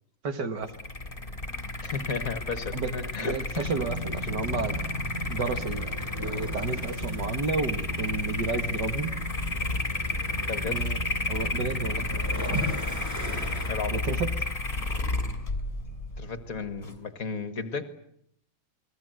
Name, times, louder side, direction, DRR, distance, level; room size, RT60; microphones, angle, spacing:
voice 1, 0.2-0.7 2.7-4.8 5.3-9.1 10.7-12.1 13.9-14.3, right 4 dB, 75° right, 8 dB, 2.4 m, -32 dB
sound 1, 0.6-17.0, left 2 dB, 30° left, 3.1 m, -32 dB
voice 2, 1.8-3.7 10.5-10.9 13.7-14.0 16.2-17.9, left 5 dB, 55° left, 10 dB, 2.0 m, -34 dB
Waves surf / Splash splatter / Trickle dribble, 3.5-13.7, equal, 10° right, 7.4 m, -36 dB
29.5 x 20.5 x 7.9 m, 0.72 s
omnidirectional pair, 1.9 m